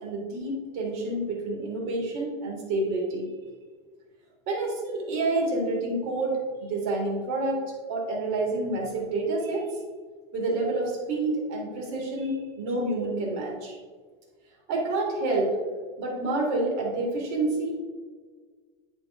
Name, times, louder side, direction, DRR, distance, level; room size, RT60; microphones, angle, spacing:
voice 1, 0.0-3.3 4.5-9.7 10.3-13.8 14.7-15.5 16.0-17.8, right 2 dB, 50° right, -1 dB, 2.0 m, -28 dB
9.6 x 3.9 x 3.7 m, 1.5 s
supercardioid pair, 160°, 15 cm